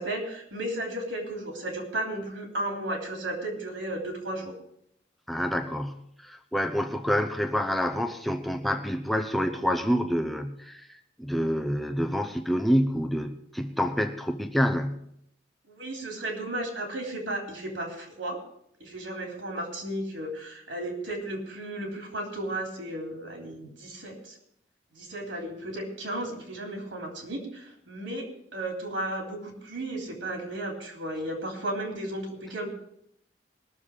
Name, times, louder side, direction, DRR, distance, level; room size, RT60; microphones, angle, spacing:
voice 1, 0.0-4.5 15.7-18.4 18.8-24.4 24.9-32.7, right 1 dB, 85° right, 1 dB, 3.4 m, -34 dB
voice 2, 5.3-10.9 11.2-15.0, equal, ahead, 5 dB, 0.8 m, -27 dB
21.0 x 7.1 x 5.0 m, 0.73 s
head